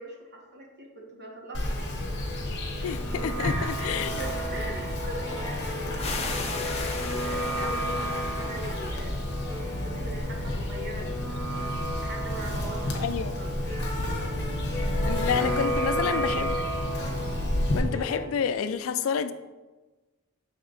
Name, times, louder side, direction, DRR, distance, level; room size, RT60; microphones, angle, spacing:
voice 1, 0.0-2.1 3.1-9.2 9.6-11.4 11.8-13.1 13.4-13.7 14.1-14.2 14.8-14.9 15.6-16.7, right 1 dB, 50° right, 0 dB, 1.3 m, -41 dB
Insect, 1.5-17.8, left 1 dB, 50° left, 1.1 m, -31 dB
sound 1, 2.0-18.3, equal, 15° left, 1.1 m, -34 dB
voice 2, 2.8-4.2 12.9-13.3 15.0-16.6 17.7-19.3, left 7 dB, 70° left, 12 dB, 0.3 m, -29 dB
sound 2, 6.0-9.6, left 4 dB, 30° left, 0.6 m, -38 dB
6.8 x 3.6 x 4.0 m, 1.2 s
head